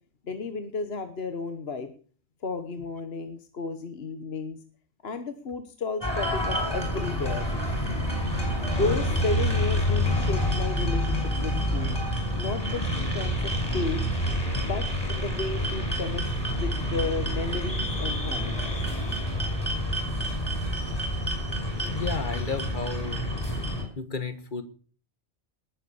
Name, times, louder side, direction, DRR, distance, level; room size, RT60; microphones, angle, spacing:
voice 1, 0.2-1.9 2.4-4.6 5.0-7.5 8.0-11.9 12.4-14.0 14.5-16.2 16.5-18.8, left 4 dB, 60° left, 8 dB, 1.5 m, -33 dB
sound 1, 6.0-23.8, equal, 20° left, 6.5 m, -28 dB
voice 2, 21.9-23.2 24.0-24.6, left 4 dB, 45° left, 10 dB, 1.7 m, -32 dB
19.5 x 8.0 x 7.1 m, 0.43 s
omnidirectional pair, 1.2 m